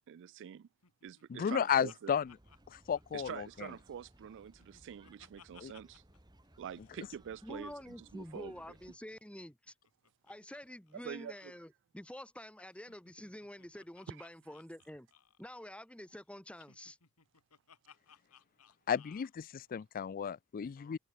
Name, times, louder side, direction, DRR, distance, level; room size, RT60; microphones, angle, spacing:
voice 1, 0.1-0.7 1.0-2.1 3.1-6.0 6.6-8.6 10.9-11.5 14.1-14.2, right 8 dB, 55° right, 0.3 m, -46 dB
Laughter, 0.8-3.8 4.1-6.2 6.4-6.5 6.7-7.0 8.2-10.6 10.9-11.0 11.3-11.6 12.7-15.5 16.5-19.3, left 7 dB, 85° left, 2.9 m, -63 dB
voice 2, 1.3-2.3 2.7-3.7 5.6-5.7 18.9-21.0, left 8 dB, 40° left, 0.3 m, -33 dB
sound 1, 2.2-9.0, right 1 dB, 20° right, 1.9 m, -63 dB
voice 3, 7.4-9.7 10.3-15.1 15.4-17.0, left 1 dB, 5° left, 1.4 m, -48 dB
head